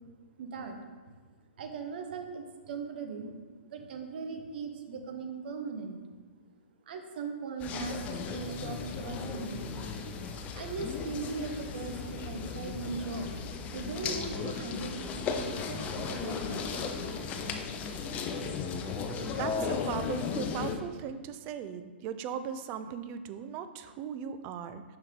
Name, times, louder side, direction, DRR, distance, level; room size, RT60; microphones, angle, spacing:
voice 1, 0.4-0.8 1.6-3.4 3.6-6.0 6.9-9.8 10.5-13.4 13.7-17.0, right 4 dB, 55° right, 5 dB, 0.9 m, -39 dB
sound 1, 7.6-20.8, left 5 dB, 25° left, 0.5 m, -36 dB
voice 2, 19.3-24.8, right 8 dB, 30° right, 11 dB, 0.4 m, -38 dB
5.7 x 5.4 x 3.6 m, 1.5 s
hypercardioid pair, 130°, 6 cm